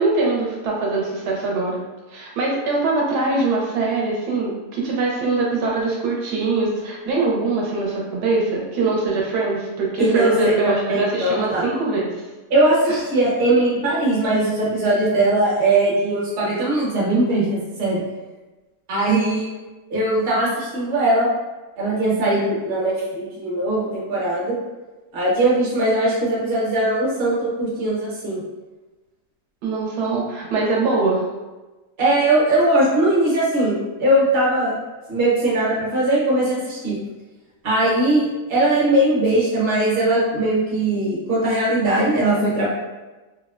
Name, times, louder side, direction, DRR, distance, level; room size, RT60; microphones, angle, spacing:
voice 1, 0.0-1.8 2.1-12.2 12.9-13.0 29.6-31.2, right 3 dB, 80° right, -3 dB, 1.1 m, -22 dB
voice 2, 10.0-10.5 10.9-11.6 12.5-18.0 18.9-19.5 19.9-21.3 21.8-24.5 25.1-28.4 32.0-33.7 34.0-34.7 35.1-37.0 37.6-42.7, right 1 dB, 45° right, -6 dB, 0.9 m, -20 dB
3.4 x 2.0 x 2.3 m, 1.2 s
omnidirectional pair, 1.7 m